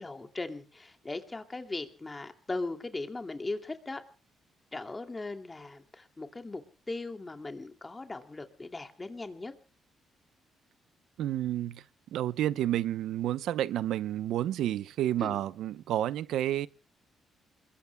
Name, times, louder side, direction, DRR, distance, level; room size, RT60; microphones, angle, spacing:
voice 1, 0.0-4.0 4.7-6.6 6.9-9.5 15.2-15.4, left 2 dB, 20° left, 2.6 m, -38 dB
voice 2, 11.2-11.8 12.1-16.7, right 12 dB, 85° right, 0.7 m, -30 dB
28.5 x 22.0 x 2.2 m
cardioid pair, 95°, 0 cm